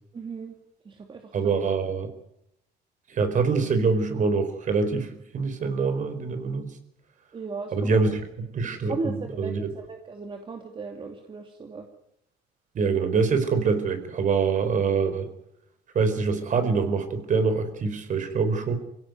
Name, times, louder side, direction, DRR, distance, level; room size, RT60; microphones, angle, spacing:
voice 1, 0.1-0.6 0.8-1.5 7.3-8.0 8.6-11.9, right 4 dB, 30° right, 3 dB, 2.7 m, -36 dB
voice 2, 1.3-2.1 3.1-6.7 7.7-8.2 8.5-9.7 12.7-15.3 15.9-18.7, right 4 dB, 50° right, 9 dB, 4.6 m, -25 dB
24.0 x 17.0 x 9.6 m, 0.78 s
cardioid pair, 110°, 17 cm